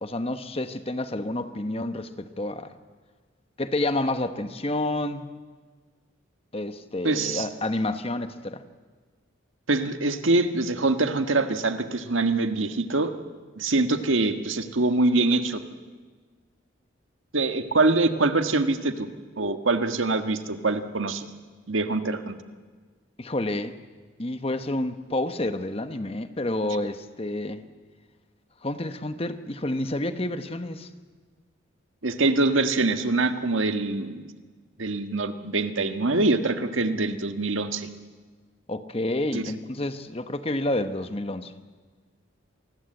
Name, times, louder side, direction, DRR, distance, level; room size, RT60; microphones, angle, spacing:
voice 1, 0.0-2.7 3.6-5.3 6.5-8.6 23.2-23.7 24.2-27.6 28.6-30.9 38.7-41.5, left 1 dB, 30° left, 10 dB, 1.1 m, -29 dB
voice 2, 7.0-7.5 9.7-13.1 13.6-15.6 17.3-19.1 19.4-21.3 21.7-22.4 32.0-34.2 34.8-37.9 39.3-39.4, right 2 dB, 85° right, 8 dB, 1.5 m, -24 dB
27.5 x 20.0 x 7.9 m, 1.5 s
head